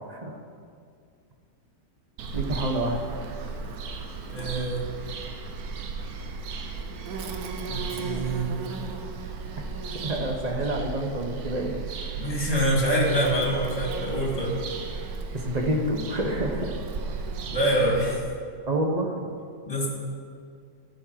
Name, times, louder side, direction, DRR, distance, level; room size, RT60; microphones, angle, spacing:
Bird vocalization bird call bird song, 2.2-18.2, right 4 dB, 65° right, 1.2 m, -35 dB
voice 1, 2.3-3.0 10.0-11.7 15.3-16.8 17.7-17.9 18.7-19.1, right 1 dB, 30° right, 2 dB, 0.9 m, -28 dB
voice 2, 4.3-4.9 7.7-8.5 12.2-14.6 17.5-18.2 19.7-19.9, right 1 dB, 20° left, -3 dB, 2.2 m, -25 dB
14.0 x 6.5 x 4.7 m, 2.2 s
omnidirectional pair, 1.8 m